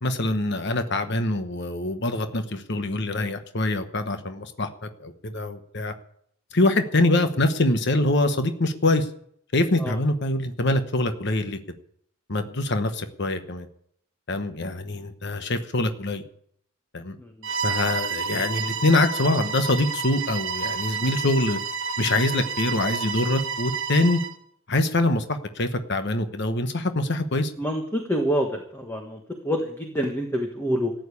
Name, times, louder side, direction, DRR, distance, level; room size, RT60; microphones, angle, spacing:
voice 1, 0.0-5.9 6.5-9.1 9.5-11.6 12.3-13.7 14.3-16.2 16.9-17.2 17.6-21.6 22.0-24.2 24.7-27.5, left 2 dB, 50° left, 1.1 m, -24 dB
Bowed string instrument, 17.4-24.4, right 5 dB, 55° right, 1.2 m, -30 dB
voice 2, 27.6-29.2 29.4-30.9, equal, 10° left, 1.4 m, -26 dB
14.0 x 9.1 x 8.4 m
head